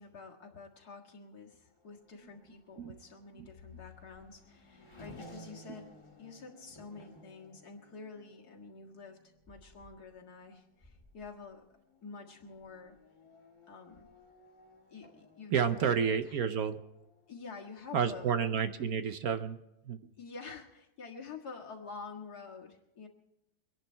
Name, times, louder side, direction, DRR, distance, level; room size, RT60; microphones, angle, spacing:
voice 1, 0.0-11.7 12.0-13.0 13.7-14.1 14.9-16.4 17.3-18.4 20.2-23.1, left 4 dB, 55° left, 0 dB, 2.3 m, -48 dB
Race car auto racing / Accelerating revving vroom, 1.5-17.7, equal, 15° left, 2.1 m, -58 dB
voice 2, 15.5-16.8 17.9-19.6 19.8-20.0, right 7 dB, 60° right, 9 dB, 1.1 m, -30 dB
24.5 x 10.5 x 4.5 m, 0.87 s
omnidirectional pair, 2.0 m